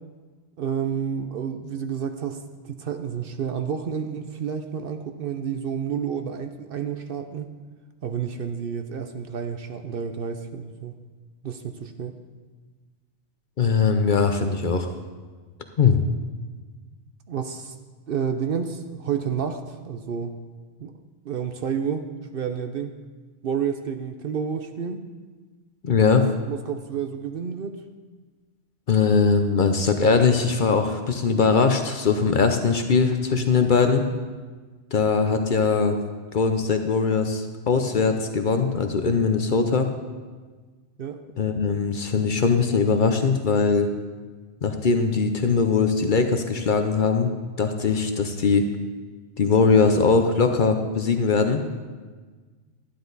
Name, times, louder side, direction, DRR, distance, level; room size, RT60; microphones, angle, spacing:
voice 1, 0.6-7.5 8.0-10.9 11.4-12.2 17.3-17.7 18.1-20.3 20.8-20.9 21.2-22.9 23.4-25.0 26.5-27.8 41.0-41.2, right 7 dB, 60° right, 7 dB, 0.7 m, -30 dB
voice 2, 13.6-14.9 15.8-16.0 25.8-26.3 28.9-34.0 34.9-36.0 36.3-39.9 41.4-43.9 44.6-47.3 47.6-48.7 49.4-51.6, left 5 dB, 50° left, 6 dB, 0.7 m, -21 dB
11.5 x 10.0 x 4.0 m, 1.4 s
omnidirectional pair, 1.2 m